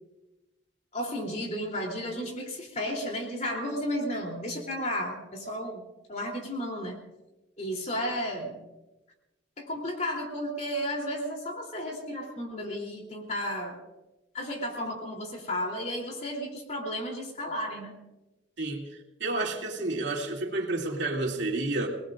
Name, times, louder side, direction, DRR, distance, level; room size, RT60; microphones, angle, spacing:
voice 1, 0.9-5.8 6.1-7.0 7.6-8.6 9.6-13.8 14.3-17.9, equal, 40° left, 1 dB, 3.2 m, -33 dB
voice 2, 19.2-21.9, right 2 dB, 70° right, 0 dB, 2.6 m, -30 dB
29.0 x 19.0 x 2.5 m, 1.0 s
head